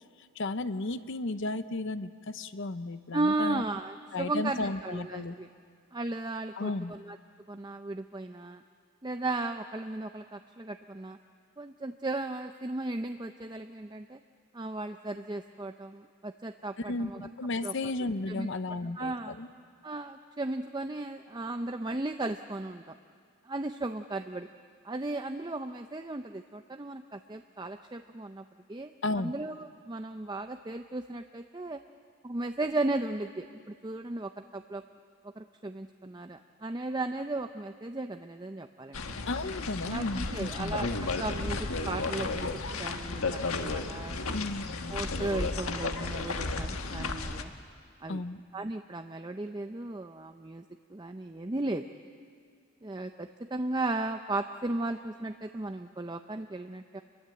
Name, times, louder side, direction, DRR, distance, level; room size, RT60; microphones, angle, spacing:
voice 1, 0.4-3.6 4.1-5.3 6.6-6.9 16.9-19.5 29.0-29.3 39.3-40.8 44.3-44.7 48.1-48.4, left 2 dB, 55° left, 12 dB, 0.8 m, -33 dB
voice 2, 3.1-5.5 5.9-7.2 7.5-8.6 9.0-11.2 11.6-14.2 14.5-17.3 17.6-17.7 18.3-18.5 18.8-19.3 19.8-22.9 23.4-24.5 24.8-28.9 29.2-31.8 32.2-34.8 35.2-39.0 39.8-40.9 41.1-44.3 44.9-47.5 48.0-48.2 48.5-50.6 50.9-51.8 52.8-57.0, right 2 dB, 20° right, 6 dB, 0.5 m, -35 dB
sound 1, 38.9-47.4, left 3 dB, 75° left, 1.4 m, -33 dB
27.0 x 22.5 x 7.8 m, 2.2 s
head